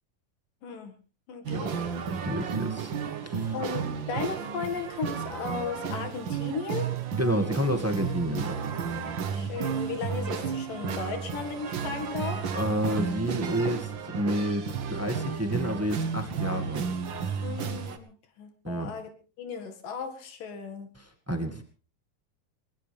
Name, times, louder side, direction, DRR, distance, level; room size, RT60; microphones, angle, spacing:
voice 1, 0.6-0.9 1.3-1.9 3.5-6.9 9.3-12.4 17.4-19.1 19.4-20.9, left 5 dB, 75° left, 6 dB, 3.7 m, -36 dB
sound 1, 1.5-18.0, right 6 dB, 50° right, 1.5 m, -33 dB
voice 2, 2.2-2.9 3.2-3.5 7.2-8.5 12.5-16.8 18.6-18.9 20.9-21.6, equal, 10° right, 5 dB, 0.9 m, -29 dB
21.0 x 20.0 x 3.5 m, 0.36 s
omnidirectional pair, 3.9 m